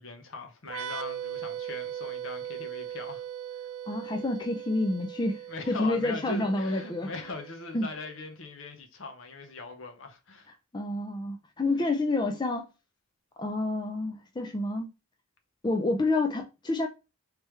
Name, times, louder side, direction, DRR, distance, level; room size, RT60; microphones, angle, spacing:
voice 1, 0.0-3.3 5.5-10.5, left 3 dB, 60° left, 0.8 m, -40 dB
sound 1, 0.6-8.2, right 10 dB, 65° right, 0.4 m, -39 dB
voice 2, 3.9-5.4 5.7-7.1 7.7-7.9 10.7-12.7 13.4-14.9 15.6-16.9, left 2 dB, 20° left, 0.4 m, -28 dB
3.3 x 3.2 x 3.2 m
head